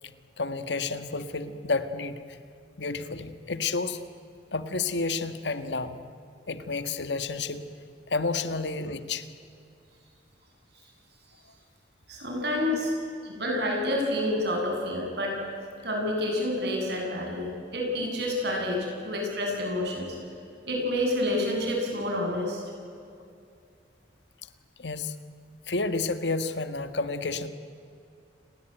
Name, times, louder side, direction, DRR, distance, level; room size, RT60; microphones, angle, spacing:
voice 1, 0.4-2.2 2.8-4.0 4.5-6.0 6.5-7.7 8.1-9.3 12.7-12.8 24.8-25.1 25.7-27.5, left 3 dB, 70° left, 11 dB, 1.6 m, -30 dB
voice 2, 12.1-12.9 13.2-15.4 15.8-20.1 20.7-22.6, left 1 dB, 60° right, 0 dB, 8.0 m, -28 dB
29.0 x 20.0 x 9.0 m, 2.5 s
head